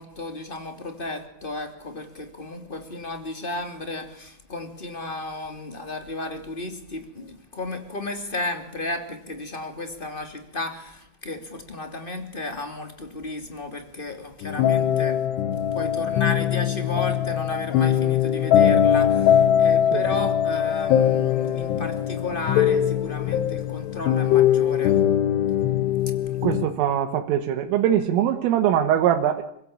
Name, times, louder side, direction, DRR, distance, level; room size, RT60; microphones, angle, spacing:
voice 1, 0.0-25.0, left 2 dB, 15° left, 6 dB, 2.0 m, -34 dB
sound 1, 14.4-26.7, left 10 dB, 70° left, 2.9 m, -21 dB
voice 2, 26.4-29.4, right 10 dB, 85° right, 4 dB, 4.1 m, -22 dB
28.5 x 16.5 x 8.8 m, 0.75 s
omnidirectional pair, 5.6 m